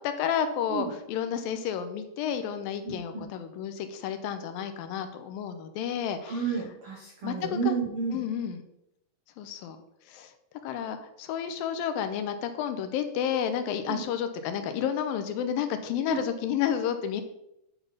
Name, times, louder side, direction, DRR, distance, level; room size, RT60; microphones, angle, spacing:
voice 1, 0.0-6.4 7.2-7.8 8.1-8.6 9.4-9.8 10.1-10.3 10.6-17.2, left 8 dB, 85° left, 8 dB, 2.4 m, -31 dB
voice 2, 2.8-3.2 6.2-8.2 13.9-14.0 16.1-16.2, right 6 dB, 80° right, 0 dB, 1.2 m, -31 dB
8.9 x 4.0 x 5.4 m, 0.81 s
omnidirectional pair, 4.1 m